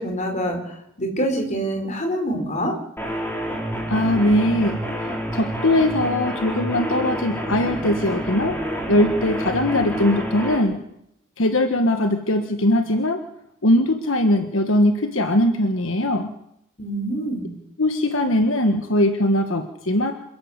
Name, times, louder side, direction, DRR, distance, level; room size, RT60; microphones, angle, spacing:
voice 1, 0.0-2.8 16.8-17.5, equal, 35° left, 4 dB, 4.9 m, -26 dB
sound 1, 3.0-10.6, equal, 10° left, 5.4 m, -28 dB
voice 2, 3.9-4.8 5.3-8.6 8.9-10.8 11.4-13.2 13.6-16.3 17.8-20.1, left 1 dB, 70° left, 6 dB, 1.6 m, -20 dB
27.0 x 12.0 x 8.2 m, 0.79 s
head